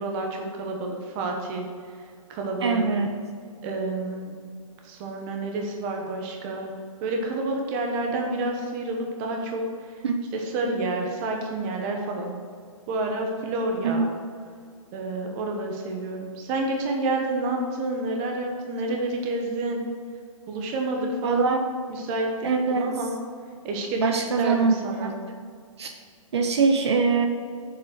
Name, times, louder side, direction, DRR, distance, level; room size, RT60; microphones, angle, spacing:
voice 1, 0.0-1.7 2.3-2.8 3.6-4.3 4.8-6.7 7.0-10.0 10.3-12.4 12.9-14.1 14.9-19.8 20.5-21.6 21.9-23.1 23.6-25.1, right 2 dB, 20° right, 2 dB, 1.1 m, -29 dB
voice 2, 2.6-3.1 10.0-10.1 13.8-14.1 21.2-21.6 22.4-22.8 24.0-25.1 25.8-25.9 26.3-27.3, right 5 dB, 50° right, 4 dB, 0.8 m, -23 dB
7.6 x 7.2 x 6.5 m, 2.1 s
hypercardioid pair, 170°, 18 cm